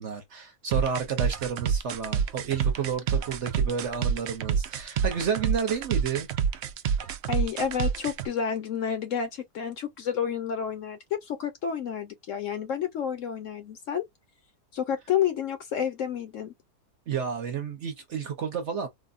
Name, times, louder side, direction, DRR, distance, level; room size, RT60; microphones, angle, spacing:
voice 1, 0.0-6.3 17.1-18.9, right 7 dB, 55° right, 0.9 m, -31 dB
sound 1, 0.7-8.3, right 7 dB, 80° right, 0.6 m, -27 dB
voice 2, 7.3-14.0 14.7-16.5, left 8 dB, 65° left, 0.9 m, -30 dB
4.0 x 2.1 x 2.4 m
omnidirectional pair, 1.7 m